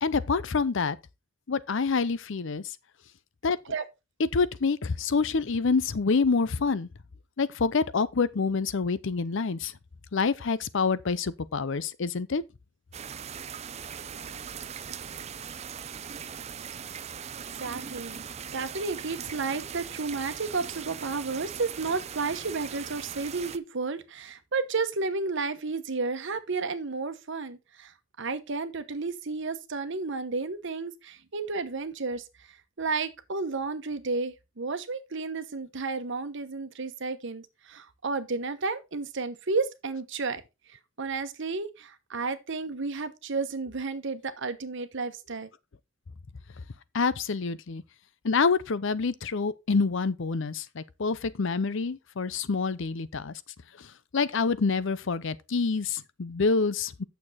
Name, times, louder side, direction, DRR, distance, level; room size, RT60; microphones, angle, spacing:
voice 1, 0.0-1.0 1.5-2.7 3.4-3.6 4.3-6.9 7.4-9.7 10.1-12.4 46.9-47.8 48.2-53.3 53.8-57.0, left 4 dB, 65° left, 0.6 m, -27 dB
sound 1, 12.9-23.6, right 7 dB, 35° right, 0.5 m, -40 dB
voice 2, 17.5-32.2 32.8-40.4 40.7-45.5, right 4 dB, 65° right, 1.1 m, -32 dB
8.7 x 6.9 x 4.1 m
head